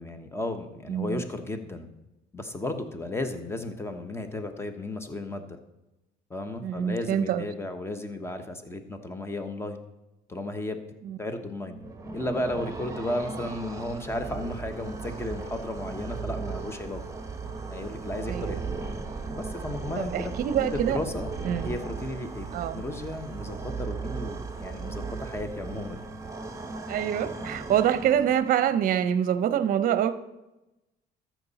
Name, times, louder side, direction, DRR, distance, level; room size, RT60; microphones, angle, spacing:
voice 1, 0.0-1.9 2.3-5.6 6.3-9.8 10.3-10.8 11.2-11.8 12.1-17.0 17.7-18.7 19.3-20.3 20.7-21.3 21.6-22.5 22.7-26.1, left 1 dB, 15° left, 7 dB, 1.1 m, -34 dB
voice 2, 0.9-1.2 6.6-7.5 11.0-11.2 18.3-18.6 20.0-21.0 21.4-21.7 22.5-22.8 26.9-30.1, right 9 dB, 55° right, 13 dB, 0.6 m, -26 dB
sound 1, 11.7-28.6, right 4 dB, 20° right, 1.2 m, -36 dB
13.5 x 6.1 x 4.1 m, 0.98 s
cardioid pair, 110°, 17 cm